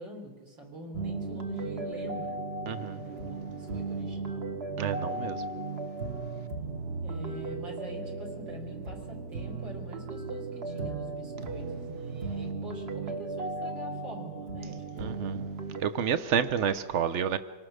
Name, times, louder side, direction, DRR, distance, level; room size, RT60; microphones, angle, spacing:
voice 1, 0.0-2.4 3.0-4.5 7.0-15.3, equal, 55° right, 4.8 m, -45 dB
sound 1, 0.9-15.8, right 3 dB, 35° right, 1.3 m, -36 dB
voice 2, 2.7-3.0 4.8-5.4 15.0-15.3 15.8-17.4, right 8 dB, 75° right, 0.6 m, -29 dB
26.0 x 18.5 x 6.5 m
omnidirectional pair, 2.4 m